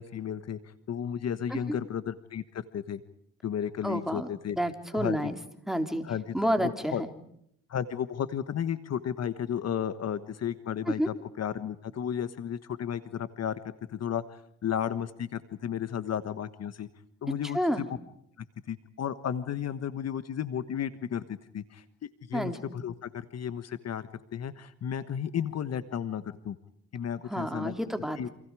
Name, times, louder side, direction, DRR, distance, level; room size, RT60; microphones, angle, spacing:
voice 1, 0.0-3.0 3.4-4.6 4.9-5.3 6.0-7.0 7.7-13.6 13.9-16.9 17.2-18.0 18.4-26.6 26.9-27.7 28.2-28.3, left 9 dB, 55° left, 12 dB, 1.4 m, -33 dB
voice 2, 3.8-4.3 4.6-5.4 5.7-6.0 6.3-7.1 11.0-11.1 17.5-17.9 22.3-22.6 27.3-28.3, equal, ahead, 5 dB, 3.5 m, -29 dB
29.0 x 27.5 x 4.9 m, 0.73 s
cardioid pair, 90°, 30 cm